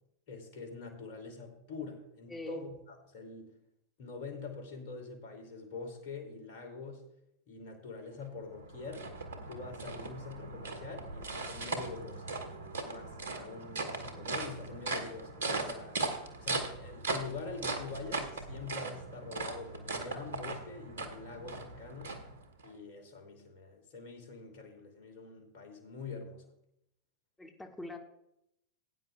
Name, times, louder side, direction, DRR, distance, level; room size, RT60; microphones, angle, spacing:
voice 1, 0.3-3.5 4.0-7.0 7.5-9.1 9.5-12.2 12.8-16.0 16.4-22.1 22.6-26.4, left 4 dB, 55° left, 3 dB, 2.9 m, -45 dB
sound 1, 8.2-22.7, right 3 dB, 75° right, 1.4 m, -39 dB
voice 2, 27.4-28.0, left 2 dB, 10° left, 3 dB, 1.9 m, -43 dB
18.0 x 9.4 x 2.4 m, 0.80 s
hypercardioid pair, 90°, 0 cm